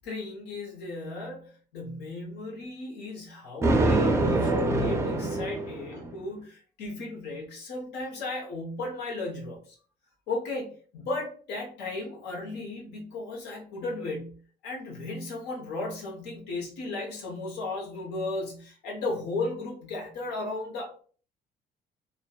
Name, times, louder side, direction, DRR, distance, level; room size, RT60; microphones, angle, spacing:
voice 1, 0.0-9.8 10.3-20.9, left 2 dB, 80° left, -2 dB, 0.9 m, -35 dB
Thunder, 3.6-6.1, right 2 dB, 15° right, 0.4 m, -25 dB
2.6 x 2.2 x 2.2 m, 0.42 s
cardioid pair, 110°, 17 cm